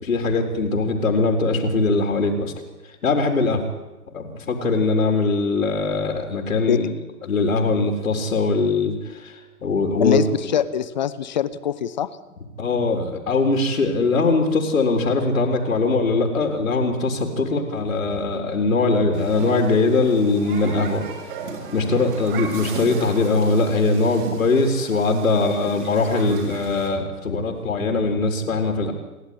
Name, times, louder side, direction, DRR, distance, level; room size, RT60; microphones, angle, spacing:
voice 1, 0.0-2.5 3.0-3.6 4.1-6.9 7.3-10.2 12.6-21.0 21.7-28.9, left 3 dB, 60° left, 2 dB, 4.0 m, -21 dB
voice 2, 10.0-12.1 25.6-25.7, left 10 dB, 30° left, 16 dB, 0.9 m, -23 dB
Human group actions, 19.1-26.9, right 4 dB, 35° right, 6.5 m, -36 dB
28.5 x 11.5 x 10.0 m, 1.1 s
figure-of-eight pair, 140°, 46 cm